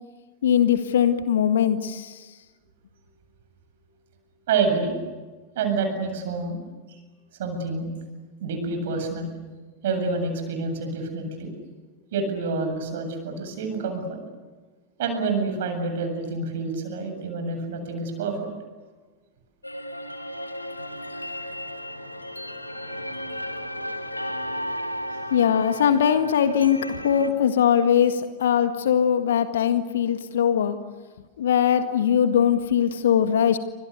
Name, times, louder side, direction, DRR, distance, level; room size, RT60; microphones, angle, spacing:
voice 1, 0.4-2.3 25.3-30.8 31.4-33.6, left 8 dB, 60° left, 9 dB, 1.8 m, -21 dB
voice 2, 4.5-5.0 5.5-6.6 7.4-7.9 8.4-9.3 9.8-11.5 12.1-14.2 15.0-18.5, right 4 dB, 55° right, 6 dB, 7.8 m, -27 dB
sound 1, 19.6-27.3, equal, 85° left, 2.4 m, -34 dB
29.5 x 26.0 x 6.8 m, 1.3 s
figure-of-eight pair, 90°, 0 cm